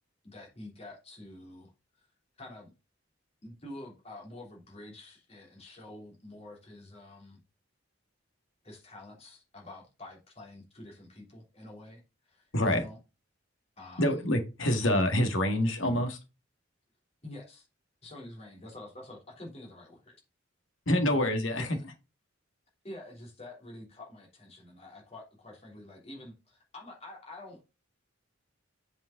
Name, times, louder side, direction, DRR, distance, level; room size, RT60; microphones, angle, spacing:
voice 1, 0.2-1.7 2.0-2.1 2.4-2.7 3.4-7.4 8.6-13.0 13.8-14.2 14.8-15.0 17.2-17.7 18.0-20.1 21.1-21.8 22.8-27.6, left 1 dB, 30° left, 3.3 m, -47 dB
voice 2, 12.5-12.8 14.0-16.2 20.9-21.8, left 1 dB, 85° left, 1.8 m, -26 dB
7.8 x 5.4 x 3.8 m
head